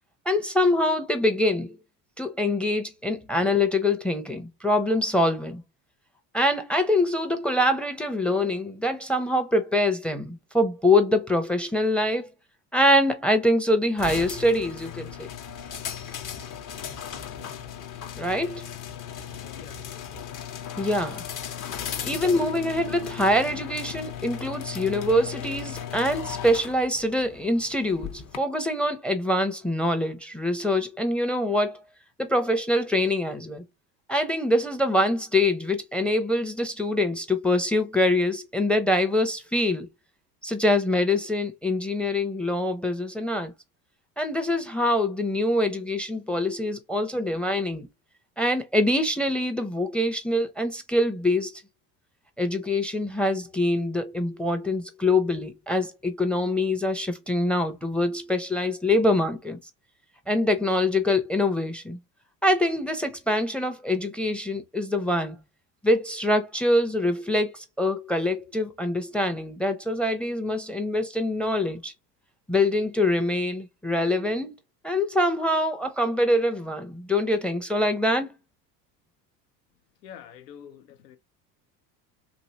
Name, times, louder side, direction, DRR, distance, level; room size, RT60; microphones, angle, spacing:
voice 1, 0.3-1.8 2.2-5.6 6.3-12.3 12.7-15.3 18.2-18.7 20.8-21.2 22.0-31.8 32.2-33.7 34.1-39.9 40.4-43.5 44.2-47.9 48.4-51.5 52.4-59.6 60.3-62.0 62.4-65.4 65.8-71.9 72.5-74.5 74.8-78.3, left 1 dB, ahead, 0.5 m, -24 dB
sound 1, 14.0-28.4, left 9 dB, 40° left, 0.8 m, -37 dB
voice 2, 21.5-22.1 80.0-81.2, left 9 dB, 85° left, 0.8 m, -47 dB
3.1 x 2.6 x 2.7 m
hypercardioid pair, 80°, 49 cm